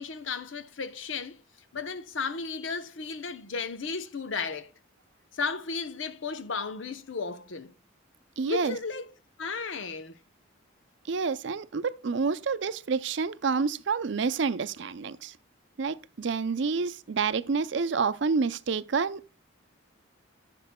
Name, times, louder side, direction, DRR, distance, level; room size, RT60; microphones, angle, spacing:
voice 1, 0.0-1.4 1.7-4.7 5.3-7.7 8.4-9.1 9.4-10.2, left 4 dB, 70° left, 0.8 m, -34 dB
voice 2, 8.4-8.8 11.1-15.4 15.8-19.3, right 5 dB, 60° right, 0.5 m, -28 dB
14.0 x 6.8 x 2.2 m
head